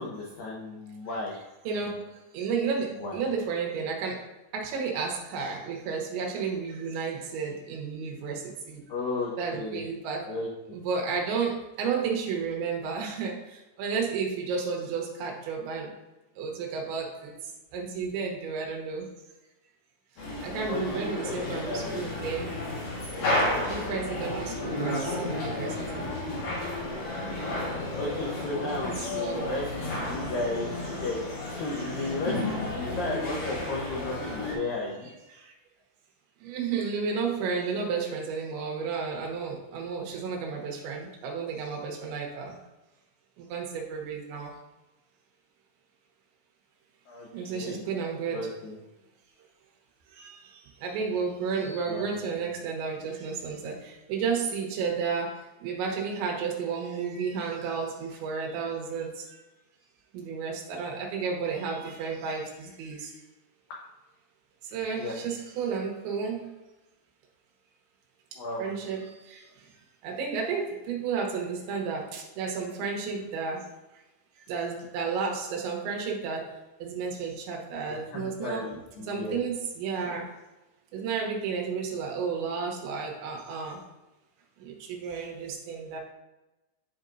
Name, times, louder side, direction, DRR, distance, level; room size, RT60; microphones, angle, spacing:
voice 1, 0.0-1.4 1.7-1.9 2.9-3.2 8.9-9.9 10.2-10.8 20.7-22.2 28.0-31.2 31.5-35.1 47.1-47.8 48.3-48.8 51.5-52.1 52.4-52.5 61.8-61.9 65.0-65.2 68.4-68.6 77.8-79.4, left 2 dB, 85° left, -3 dB, 2.0 m, -35 dB
voice 2, 1.6-2.0 2.3-4.3 4.5-8.8 9.4-10.3 10.7-15.9 16.4-17.3 17.7-19.1 20.4-22.5 23.6-26.1 28.8-29.6 35.3-35.5 36.4-42.5 43.4-44.5 47.3-48.5 50.1-50.5 50.8-59.2 60.1-63.1 64.7-66.5 68.6-69.4 70.0-73.7 74.5-76.5 76.8-78.7 79.1-80.3 80.9-83.8 84.6-86.0, right 5 dB, 75° right, 0 dB, 3.3 m, -32 dB
sound 1, 20.2-34.6, left 1 dB, 60° left, 3.2 m, -32 dB
11.0 x 4.4 x 2.6 m, 1.0 s
omnidirectional pair, 5.5 m